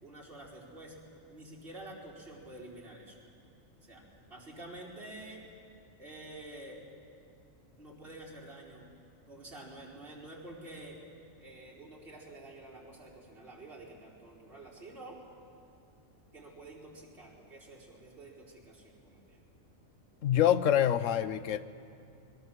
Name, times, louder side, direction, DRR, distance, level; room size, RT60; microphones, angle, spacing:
voice 1, 0.0-1.0 1.3-3.2 3.8-4.0 4.3-5.4 6.0-6.8 7.8-8.9 9.3-11.0 11.4-15.2 16.3-19.4, right 2 dB, 45° right, -5 dB, 4.5 m, -49 dB
voice 2, 20.2-21.7, left 10 dB, 70° left, 13 dB, 1.1 m, -26 dB
26.5 x 21.0 x 7.3 m, 2.4 s
omnidirectional pair, 1.4 m